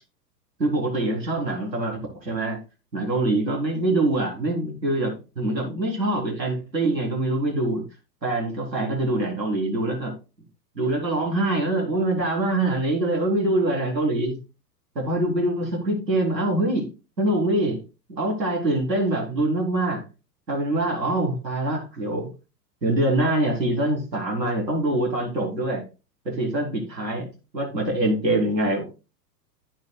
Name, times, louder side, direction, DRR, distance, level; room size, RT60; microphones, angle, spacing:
voice 1, 0.6-2.6 2.9-7.8 8.2-10.1 10.8-14.4 15.0-16.9 17.2-17.8 18.1-20.0 20.5-22.3 22.8-25.8 26.2-28.8, right 1 dB, 85° right, -1 dB, 4.2 m, -24 dB
15.0 x 5.2 x 2.4 m, 0.31 s
figure-of-eight pair, 100°, 49 cm